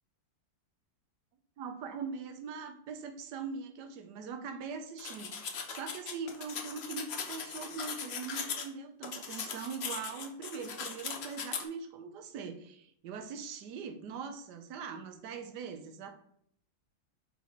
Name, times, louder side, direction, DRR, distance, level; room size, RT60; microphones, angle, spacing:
voice 1, 1.6-16.1, right 5 dB, 65° right, 7 dB, 1.3 m, -42 dB
sound 1, 5.0-8.7 9.0-11.6, left 6 dB, 65° left, 0.6 m, -39 dB
5.2 x 4.8 x 4.5 m, 0.67 s
omnidirectional pair, 2.1 m